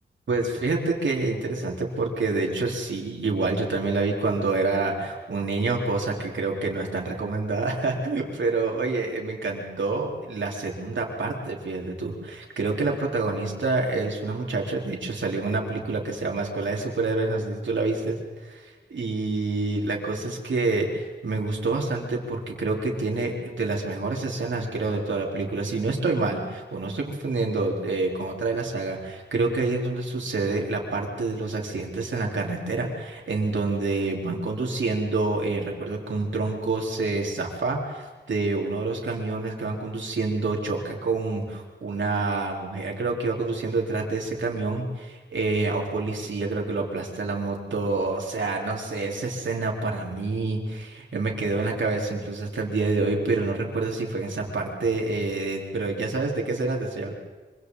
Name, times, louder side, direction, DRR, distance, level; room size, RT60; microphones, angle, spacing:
voice 1, 0.3-57.1, right 3 dB, 80° right, 0 dB, 4.2 m, -27 dB
25.5 x 25.5 x 4.1 m, 1.3 s
wide cardioid pair, 100°, 19 cm